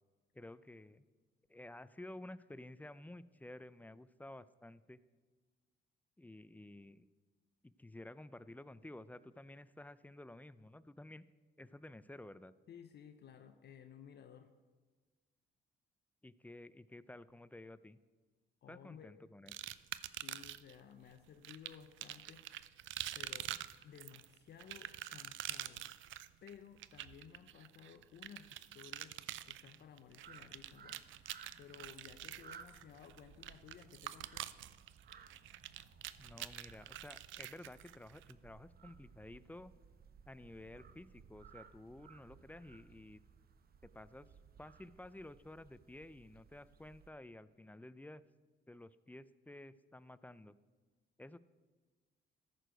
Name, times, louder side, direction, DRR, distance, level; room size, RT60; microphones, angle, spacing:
voice 1, 0.3-1.0 1.5-5.0 6.2-7.1 7.6-11.3 11.6-12.5 16.2-18.0 18.7-19.5 36.2-39.7 40.3-43.2 43.8-44.3 44.6-48.2 48.7-50.5 51.2-51.4, left 1 dB, 10° left, 16 dB, 0.4 m, -53 dB
voice 2, 12.7-14.5 18.6-19.1 20.1-23.6 23.8-25.8 26.4-29.2 29.5-34.5, left 8 dB, 60° left, 7 dB, 0.7 m, -57 dB
sound 1, 19.5-20.8 21.4-38.3, right 13 dB, 75° right, 0.5 m, -46 dB
sound 2, 30.2-47.1, right 6 dB, 50° right, 0.9 m, -60 dB
14.0 x 6.5 x 5.1 m, 1.4 s
cardioid pair, 90°, 20 cm